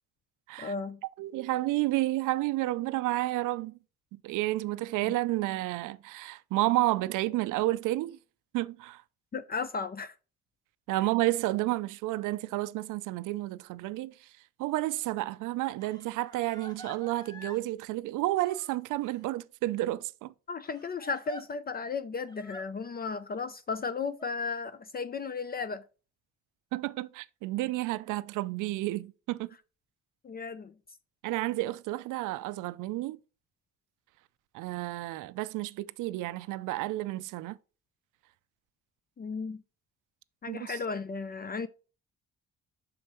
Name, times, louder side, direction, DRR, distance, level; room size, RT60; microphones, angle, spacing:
voice 1, 0.6-1.0 9.3-10.1 20.5-25.8 30.2-30.7 39.2-39.6 40.4-41.7, left 4 dB, 30° left, 0.4 m, -35 dB
voice 2, 1.2-3.8 4.1-8.2 8.5-9.0 10.9-14.3 14.6-20.3 26.7-29.5 31.2-33.2 34.5-37.6 40.5-40.8, right 17 dB, 90° right, 0.5 m, -31 dB
Crying sobbing, 15.8-17.7 18.4-19.2 20.6-21.4 22.3-22.7 23.7-24.3, equal, 15° left, 1.2 m, -49 dB
7.7 x 5.6 x 3.0 m
cardioid pair, 90°, 30 cm